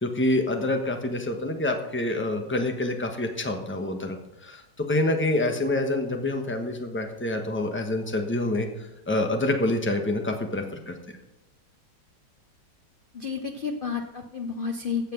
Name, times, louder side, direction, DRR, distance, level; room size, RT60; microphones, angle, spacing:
voice 1, 0.0-4.2 4.4-10.9, left 2 dB, 10° left, 4 dB, 0.9 m, -27 dB
voice 2, 13.1-15.1, left 5 dB, 85° left, 5 dB, 0.4 m, -31 dB
15.5 x 6.0 x 5.9 m, 0.91 s
omnidirectional pair, 2.0 m